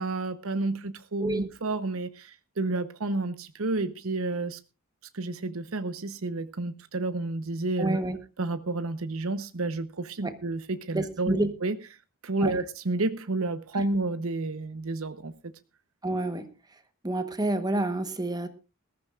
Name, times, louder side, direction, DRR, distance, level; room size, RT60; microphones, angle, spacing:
voice 1, 0.0-4.6 5.1-8.0 8.4-11.8 12.2-15.5, right 2 dB, 75° right, 0.9 m, -30 dB
voice 2, 7.8-8.2 10.2-10.3 10.9-11.5 12.4-12.5 13.7-13.8 16.0-16.5 17.0-18.5, right 1 dB, 20° right, 1.1 m, -28 dB
20.5 x 14.5 x 2.4 m
head